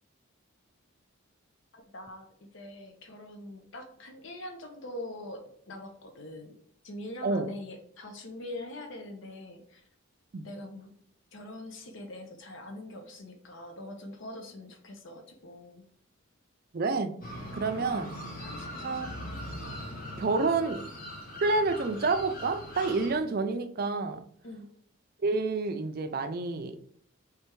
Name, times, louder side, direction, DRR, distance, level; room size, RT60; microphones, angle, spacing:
voice 1, 1.7-6.6 6.8-9.8 10.4-10.9 11.3-15.9 17.7-18.0 18.5-19.1 24.4-24.7, left 1 dB, 60° left, 4 dB, 0.7 m, -43 dB
voice 2, 16.7-17.1 17.6-18.1 18.8-19.1 20.2-20.8 21.4-24.2 25.2-26.8, right 3 dB, 45° right, 8 dB, 0.4 m, -28 dB
sound 1, 17.2-23.2, equal, 45° left, 1.0 m, -41 dB
3.3 x 3.3 x 4.6 m, 0.64 s
head